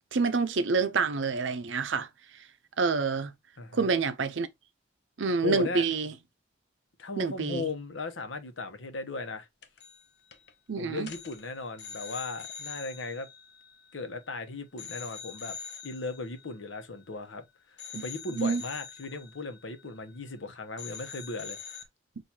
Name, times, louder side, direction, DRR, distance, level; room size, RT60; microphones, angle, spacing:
voice 1, 0.1-2.1 2.8-3.3 3.7-4.5 5.2-6.1 7.2-7.7 10.7-11.1 17.9-18.0 18.4-18.6, right 4 dB, 80° right, 0.6 m, -27 dB
voice 2, 3.6-3.9 5.4-5.9 7.0-9.5 10.8-13.3 13.9-15.6 15.8-17.4 18.0-21.6, left 3 dB, 90° left, 0.9 m, -37 dB
sound 1, 9.6-10.0 10.3-10.5 11.0-14.3 14.8-17.4 17.8-20.5 20.8-21.8, left 7 dB, 65° left, 0.8 m, -45 dB
6.3 x 2.6 x 2.8 m
head